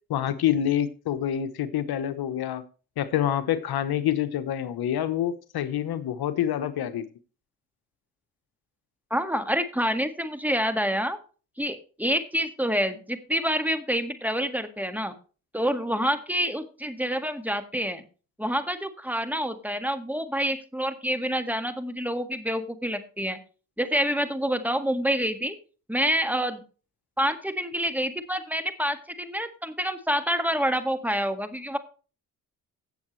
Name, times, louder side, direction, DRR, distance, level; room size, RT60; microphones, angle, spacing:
voice 1, 0.1-2.6 3.0-7.0, left 10 dB, 70° left, 12 dB, 1.1 m, -27 dB
voice 2, 9.1-11.2 11.6-15.1 15.5-18.0 18.4-23.4 23.8-25.5 25.9-26.6 27.2-31.8, equal, 5° right, 8 dB, 1.8 m, -27 dB
16.5 x 7.0 x 3.2 m, 0.36 s
cardioid pair, 70°, 38 cm